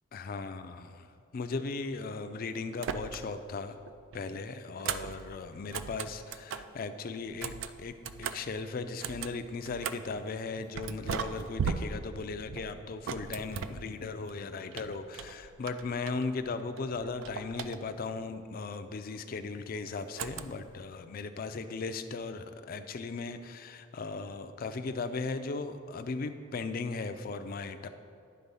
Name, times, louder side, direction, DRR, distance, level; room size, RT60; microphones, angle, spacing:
voice 1, 0.1-1.0 1.3-3.8 4.1-27.9, left 4 dB, 45° left, 9 dB, 0.4 m, -37 dB
sound 1, 2.8-3.5 3.8-6.8 7.3-10.2 10.8-14.3 14.7-16.5 16.8-18.2 20.2-20.8, right 6 dB, 70° right, 0.3 m, -39 dB
9.6 x 4.0 x 5.4 m, 2.4 s
head